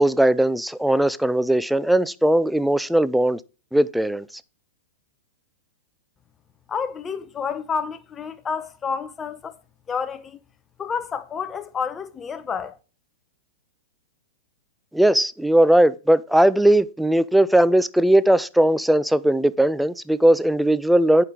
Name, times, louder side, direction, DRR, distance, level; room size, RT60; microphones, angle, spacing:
voice 1, 0.0-3.4 3.7-4.3 14.9-21.2, right 1 dB, ahead, 0.5 m, -18 dB
voice 2, 6.7-9.6 9.9-10.4 10.8-12.8, left 6 dB, 20° left, 0.9 m, -29 dB
9.2 x 5.7 x 5.2 m
hypercardioid pair, 115°, 0 cm